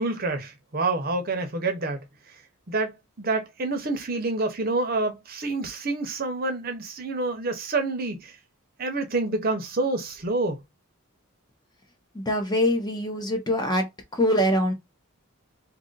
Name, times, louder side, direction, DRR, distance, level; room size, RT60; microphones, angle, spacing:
voice 1, 0.0-2.0 2.7-8.4 8.8-10.6, right 3 dB, 45° right, 0.7 m, -28 dB
voice 2, 12.1-13.9 14.1-14.7, left 1 dB, 20° left, 0.8 m, -23 dB
2.8 x 2.6 x 3.8 m
head